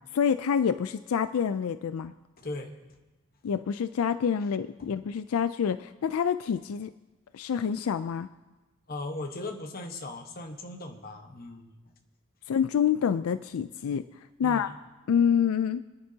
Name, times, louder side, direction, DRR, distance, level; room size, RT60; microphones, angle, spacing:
voice 1, 0.1-2.1 3.4-6.9 7.3-8.3 12.5-14.0 14.4-14.7 15.1-15.8, left 7 dB, 85° left, 12 dB, 0.4 m, -27 dB
voice 2, 2.4-2.7 4.8-4.9 8.9-11.8 14.4-14.7, left 2 dB, 45° left, 4 dB, 1.1 m, -38 dB
26.0 x 9.6 x 2.8 m, 1.2 s
head